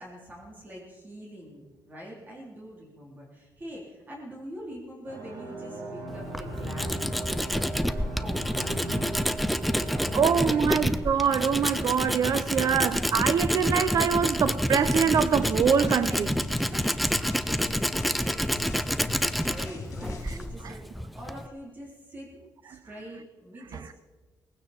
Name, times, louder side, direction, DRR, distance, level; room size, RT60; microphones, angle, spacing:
voice 1, 0.0-9.1 9.7-10.6 16.7-20.8 21.1-22.3 22.6-23.9, equal, 25° right, 3.5 m, -44 dB
sound 1, 5.1-10.9, right 2 dB, 75° right, 5.4 m, -38 dB
Tools, 6.1-21.5, equal, ahead, 0.6 m, -28 dB
voice 2, 10.1-16.3 20.6-20.7, right 7 dB, 55° right, 0.7 m, -24 dB
sound 2, 14.8-20.4, left 4 dB, 55° left, 3.7 m, -43 dB
19.0 x 16.0 x 4.4 m
cardioid pair, 135°, 7 cm